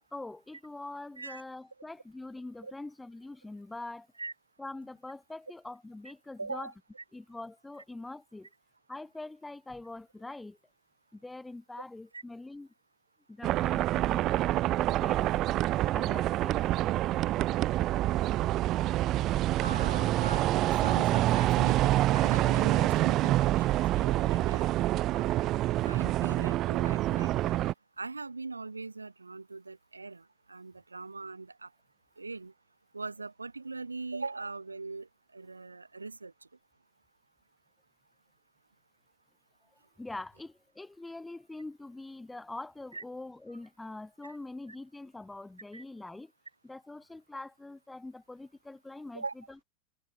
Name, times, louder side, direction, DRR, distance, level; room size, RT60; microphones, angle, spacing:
voice 1, 0.1-4.1 4.6-6.7 7.1-8.5 8.9-10.6 11.1-12.7 13.3-14.5 14.8-15.3 15.9-17.2 25.8-25.9 40.0-46.3 46.6-49.6, left 2 dB, 5° left, 4.6 m, -44 dB
voice 2, 6.4-6.7 12.1-12.2 19.6-24.7 25.1-27.6 28.0-31.7 32.2-32.5 32.9-36.3 42.9-43.0 44.2-44.4 45.7-45.8 49.1-49.3, right 3 dB, 80° right, 1.3 m, -41 dB
sound 1, 13.4-27.7, right 15 dB, 35° right, 0.4 m, -27 dB
figure-of-eight pair, 90°, 0 cm